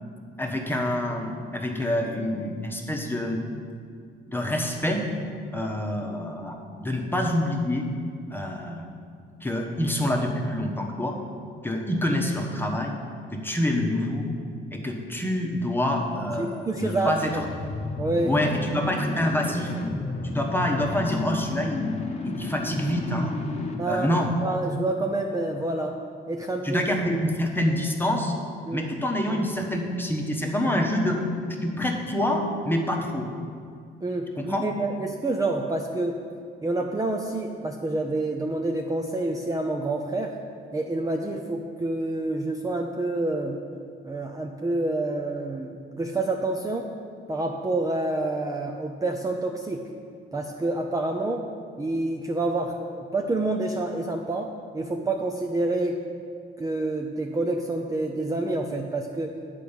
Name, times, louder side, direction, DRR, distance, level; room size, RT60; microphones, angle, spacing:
voice 1, 0.4-3.4 4.3-5.1 5.5-7.9 8.3-8.9 9.4-11.2 11.6-13.0 13.3-14.3 14.7-17.4 18.2-19.7 20.2-21.9 22.2-23.3 23.9-24.3 26.6-28.3 28.7-31.2 31.6-33.3 34.4-34.6, left 1 dB, 10° left, 1 dB, 1.2 m, -26 dB
voice 2, 16.3-17.4 18.0-18.3 23.8-24.1 24.4-26.0 26.3-26.9 28.7-28.9 34.0-36.2 36.6-40.4 40.7-43.6 44.0-46.9 47.3-49.9 50.3-51.5 51.8-56.0 56.6-59.3, right 2 dB, 15° right, 2 dB, 0.6 m, -28 dB
sound 1, 16.6-24.8, left 2 dB, 30° left, 1.0 m, -33 dB
8.5 x 4.6 x 7.1 m, 2.3 s
cardioid pair, 90°, 20 cm